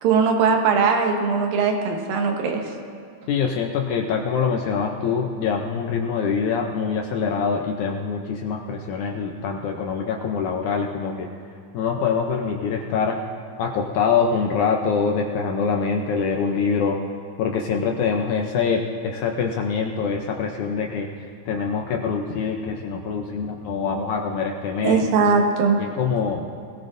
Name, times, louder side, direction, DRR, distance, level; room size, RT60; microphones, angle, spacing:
voice 1, 0.0-2.6 24.8-25.8, right 5 dB, 90° right, 2 dB, 2.8 m, -20 dB
voice 2, 3.3-11.3 11.7-13.2 13.6-17.0 17.4-21.1 21.5-25.0 25.8-26.5, left 5 dB, 75° left, 2 dB, 1.9 m, -24 dB
21.5 x 17.0 x 2.6 m, 2.2 s
omnidirectional pair, 4.0 m